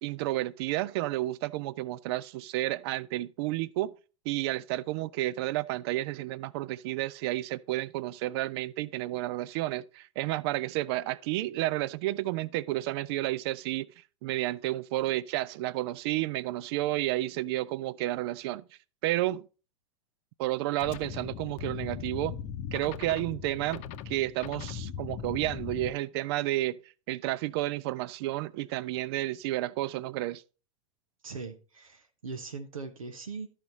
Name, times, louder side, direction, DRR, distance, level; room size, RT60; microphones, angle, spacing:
voice 1, 0.0-3.9 4.3-13.9 14.2-18.7 19.0-19.4 20.4-22.4 22.7-26.8 27.1-30.4, right 16 dB, 50° right, 0.5 m, -31 dB
sound 1, 20.8-25.9, left 8 dB, 40° left, 0.8 m, -39 dB
voice 2, 31.2-33.5, right 4 dB, 80° right, 1.0 m, -40 dB
13.0 x 5.0 x 4.1 m
figure-of-eight pair, 90°, 17 cm